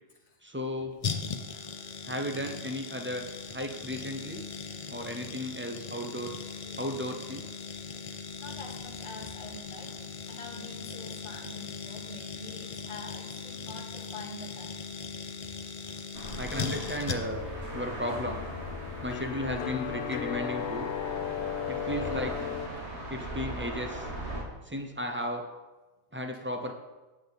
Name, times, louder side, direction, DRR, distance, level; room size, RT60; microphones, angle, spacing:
voice 1, 0.4-1.0 2.0-4.4 4.9-6.5 6.8-7.4 16.4-17.4 17.7-18.4 19.0-20.9 21.7-22.5 23.1-24.1 24.6-25.4 26.1-26.7, equal, 10° right, 4 dB, 0.6 m, -35 dB
sound 1, 1.0-17.5 17.8-17.9, left 5 dB, 40° left, 0.5 m, -39 dB
voice 2, 7.7-14.8 15.9-16.0, left 3 dB, 25° left, -1 dB, 1.3 m, -46 dB
sound 2, 16.1-24.4, right 1 dB, 65° right, 2.0 m, -39 dB
sound 3, 16.5-22.7, left 9 dB, 70° left, 0.8 m, -36 dB
8.8 x 7.2 x 4.1 m, 1.2 s
omnidirectional pair, 1.2 m